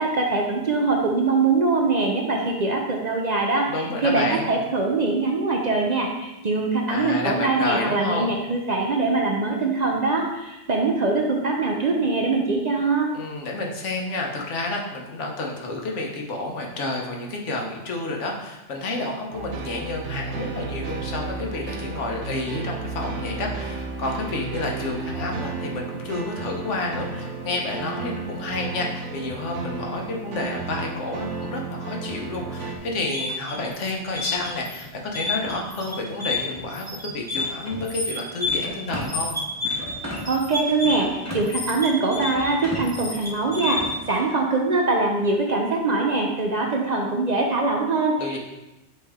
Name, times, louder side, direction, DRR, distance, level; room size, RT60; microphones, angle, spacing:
voice 1, 0.0-13.1 40.3-43.8 44.1-48.4, right 3 dB, 45° right, 0 dB, 0.7 m, -23 dB
voice 2, 3.7-4.5 6.9-8.3 13.1-39.3 48.2-48.4, left 2 dB, 85° left, 0 dB, 1.3 m, -30 dB
sound 1, 19.3-32.8, right 4 dB, 85° right, 1.0 m, -33 dB
sound 2, 33.0-44.1, left 2 dB, 15° left, 1.2 m, -30 dB
7.8 x 3.3 x 3.6 m, 1.0 s
omnidirectional pair, 1.2 m